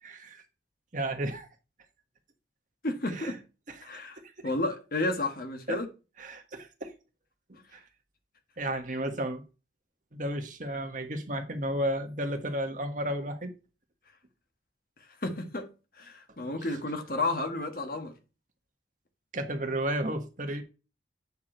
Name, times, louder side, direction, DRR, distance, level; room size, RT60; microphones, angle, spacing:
voice 1, 0.0-0.4 0.9-1.5 3.1-3.4 3.7-3.9 4.4-4.5 5.7-5.8 6.2-6.9 7.5-7.8 8.6-9.4 10.1-13.5 19.3-20.6, right 1 dB, 45° right, 1.3 m, -33 dB
voice 2, 2.8-3.4 3.8-5.9 15.2-15.7 16.0-18.1, left 2 dB, 50° left, 1.4 m, -32 dB
8.4 x 4.8 x 4.4 m
head